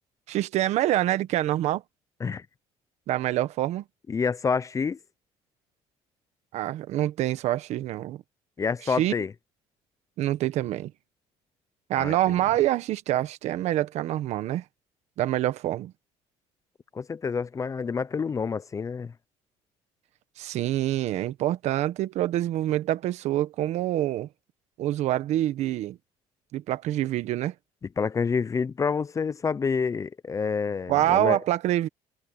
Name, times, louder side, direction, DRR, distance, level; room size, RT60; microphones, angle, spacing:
voice 1, 0.3-1.8 3.1-3.8 6.5-8.2 8.9-9.1 10.2-10.9 11.9-14.6 15.2-15.9 20.4-24.3 24.8-26.0 26.5-27.5 30.9-31.9, right 14 dB, 70° right, 1.5 m, -26 dB
voice 2, 4.1-5.0 8.6-9.3 11.9-12.3 16.9-19.1 28.0-31.4, left 5 dB, 25° left, 0.6 m, -28 dB
cardioid pair, 105°, 12 cm